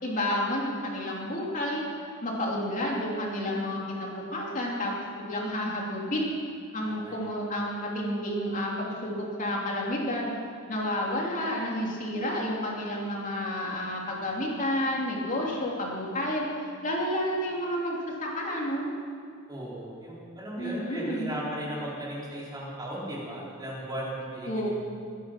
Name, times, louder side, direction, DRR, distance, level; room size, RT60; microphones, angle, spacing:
voice 1, 0.0-6.2 6.7-10.3 10.7-16.5 16.8-18.9 20.6-21.3 24.5-24.7, left 1 dB, 35° left, -3 dB, 3.0 m, -30 dB
voice 2, 6.8-7.2 19.5-24.7, right 1 dB, 15° right, -6 dB, 4.2 m, -36 dB
23.0 x 10.5 x 5.9 m, 2.4 s
head